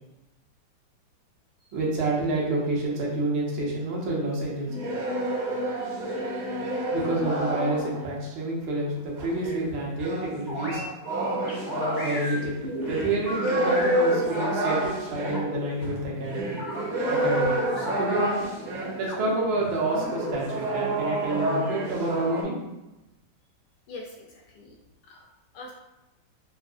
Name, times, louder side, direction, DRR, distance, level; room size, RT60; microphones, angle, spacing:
voice 1, 1.7-4.7 6.9-10.8 12.0-16.5 17.1-18.5 19.0-22.6, right 2 dB, 75° right, -4 dB, 1.7 m, -28 dB
sound 1, 4.7-8.2 9.2-19.1 19.7-22.4, right 1 dB, 55° right, 1.1 m, -29 dB
sound 2, 10.5-10.8 11.5-14.7 15.2-15.6 16.6-17.9 19.0-20.4, left 1 dB, 40° left, 0.7 m, -35 dB
voice 2, 23.9-24.8 25.0-25.3 25.5-25.7, left 2 dB, 75° left, 0 dB, 1.0 m, -43 dB
5.7 x 2.6 x 2.4 m, 0.99 s
omnidirectional pair, 2.2 m